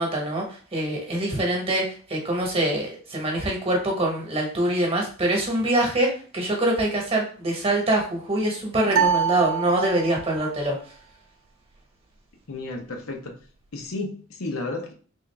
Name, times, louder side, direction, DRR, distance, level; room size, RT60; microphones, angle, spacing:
voice 1, 0.0-10.8, right 1 dB, 30° right, 0 dB, 1.0 m, -24 dB
sound 1, 8.9-10.4, right 7 dB, 75° right, 0.5 m, -24 dB
voice 2, 12.5-13.4 13.7-14.9, left 2 dB, 80° left, 3 dB, 0.7 m, -32 dB
3.5 x 2.5 x 3.3 m, 0.42 s
head